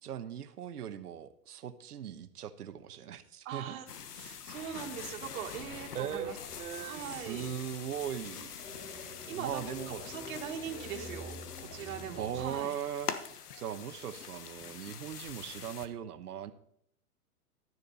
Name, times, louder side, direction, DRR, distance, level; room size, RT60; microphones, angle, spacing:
voice 1, 0.0-3.8 5.9-8.6 9.3-10.0 12.1-13.1 13.5-16.5, right 9 dB, 80° right, 12 dB, 1.1 m, -39 dB
voice 2, 3.5-6.4 6.8-7.5 9.3-9.6 9.9-12.7, right 9 dB, 60° right, 3 dB, 2.1 m, -41 dB
sound 1, 3.9-15.9, left 8 dB, 80° left, 1.2 m, -45 dB
sound 2, 4.5-12.5, left 1 dB, 45° left, 4.2 m, -49 dB
12.5 x 10.0 x 4.1 m, 0.69 s
hypercardioid pair, 125°, 46 cm